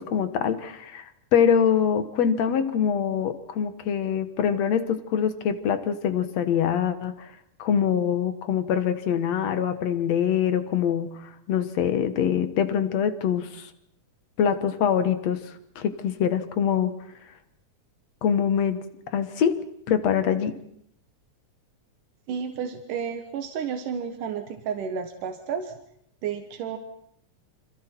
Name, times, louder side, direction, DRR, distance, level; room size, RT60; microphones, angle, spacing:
voice 1, 0.0-7.3 7.6-13.7 14.4-16.9 18.2-18.8 19.1-19.6 19.9-20.6, left 8 dB, 60° left, 10 dB, 2.5 m, -24 dB
voice 2, 22.3-25.7 26.2-26.8, right 7 dB, 90° right, 6 dB, 2.9 m, -31 dB
30.0 x 26.5 x 4.6 m, 0.72 s
omnidirectional pair, 3.6 m